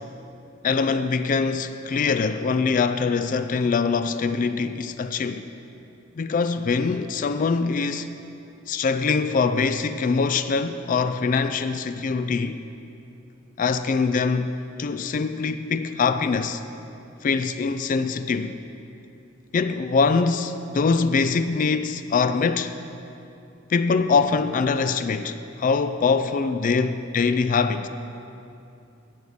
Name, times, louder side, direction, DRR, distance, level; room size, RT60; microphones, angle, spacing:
voice 1, 0.6-5.5 6.2-8.1 8.7-12.6 13.6-14.5 14.8-16.6 17.2-18.5 19.5-22.7 23.7-27.9, left 4 dB, 40° left, 0.3 m, -23 dB
9.3 x 6.5 x 8.5 m
head